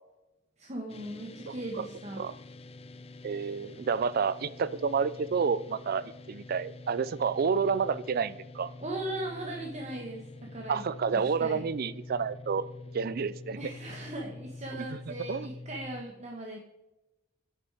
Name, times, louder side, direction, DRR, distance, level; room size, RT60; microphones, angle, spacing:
voice 1, 0.6-2.2 8.8-10.8 11.1-11.6 13.5-16.6, right 1 dB, 35° right, 0 dB, 1.4 m, -38 dB
sound 1, 0.9-16.0, left 2 dB, 30° left, 0.6 m, -46 dB
voice 2, 1.5-1.9 2.2-2.4 3.2-8.7 10.7-12.6 12.9-13.7 14.7-15.0 15.3-15.5, right 5 dB, 50° right, 18 dB, 0.4 m, -30 dB
9.9 x 9.6 x 4.8 m, 0.98 s
head